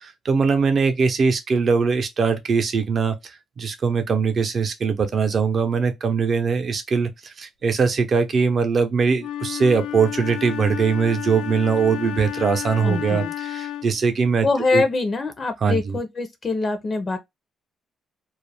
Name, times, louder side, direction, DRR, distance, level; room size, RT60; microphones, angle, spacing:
voice 1, 0.0-3.2 3.6-7.1 7.4-14.5 14.7-14.8 15.6-16.0, right 5 dB, 50° right, 0.6 m, -21 dB
Wind instrument woodwind instrument, 9.2-14.0, left 11 dB, 85° left, 0.3 m, -31 dB
voice 2, 12.8-13.3 14.4-17.2, left 3 dB, 40° left, 0.5 m, -24 dB
2.4 x 2.1 x 3.2 m
cardioid pair, 90°, 0 cm